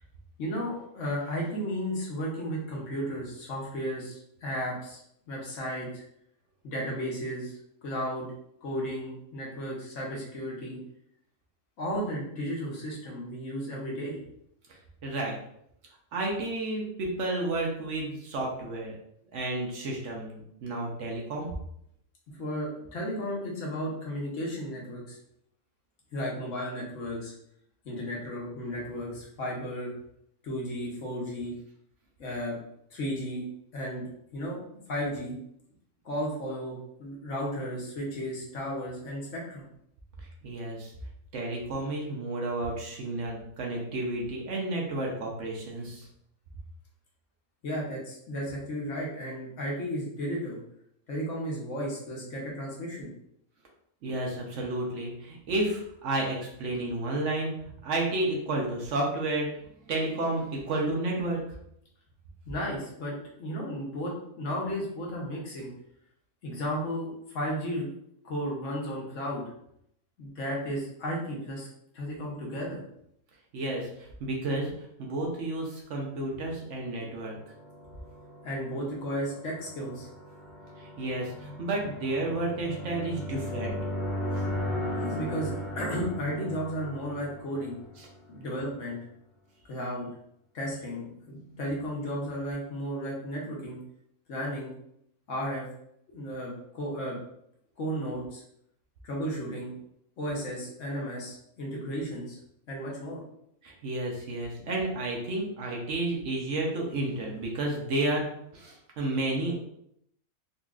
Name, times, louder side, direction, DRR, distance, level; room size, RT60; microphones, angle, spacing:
voice 1, 0.4-5.0 5.3-6.0 6.6-7.6 7.8-8.3 8.6-10.8 11.8-14.2 22.4-25.2 26.1-27.3 27.8-29.9 30.4-31.5 32.2-32.6 32.9-33.4 33.7-34.0 34.3-34.6 34.9-35.4 36.0-39.6 47.6-50.6 51.1-53.1 62.4-63.1 63.4-65.7 66.4-67.9 68.2-69.4 70.2-71.7 71.9-72.8 78.4-80.1 84.9-87.8 88.3-89.0 89.7-90.1 90.5-93.8 94.3-94.7 95.3-95.7 96.1-97.2 97.8-98.4 99.0-99.7 100.2-102.4 102.7-103.2, equal, 60° left, -3 dB, 1.2 m, -34 dB
voice 2, 15.0-15.4 16.1-18.9 19.3-21.5 40.4-40.9 41.3-46.1 54.0-57.5 57.8-61.4 73.5-74.7 75.0-77.3 80.8-83.8 84.3-84.5 88.0-88.1 91.4-91.6 103.6-109.6, right 2 dB, 65° right, -1 dB, 1.0 m, -31 dB
sound 1, 77.5-88.3, left 1 dB, ahead, 0.8 m, -36 dB
3.9 x 2.8 x 2.4 m, 0.73 s
omnidirectional pair, 1.5 m